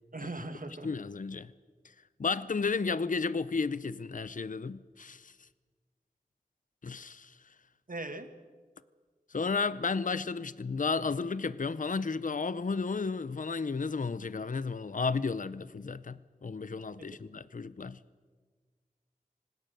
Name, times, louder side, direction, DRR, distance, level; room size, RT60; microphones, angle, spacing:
voice 1, 0.1-0.9 7.9-8.3, right 2 dB, 65° right, 1.8 m, -39 dB
voice 2, 0.8-1.5 2.2-5.3 6.8-7.4 9.3-18.0, left 4 dB, 60° left, 0.6 m, -33 dB
26.0 x 19.0 x 6.7 m
wide cardioid pair, 60°, 15 cm